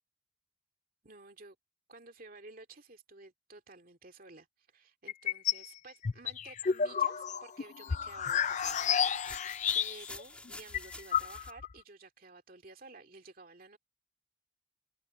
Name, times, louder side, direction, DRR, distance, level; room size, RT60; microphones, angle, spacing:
voice 1, 1.0-1.6 1.9-4.5 4.7-13.8, right 3 dB, 50° right, 2.4 m, -53 dB
sound 1, 5.1-5.7 6.0-10.2 10.5-10.6 10.7-11.7, left 7 dB, 40° left, 0.4 m, -31 dB
sound 2, 8.4-11.5, left 2 dB, 5° left, 2.4 m, -48 dB
open air
head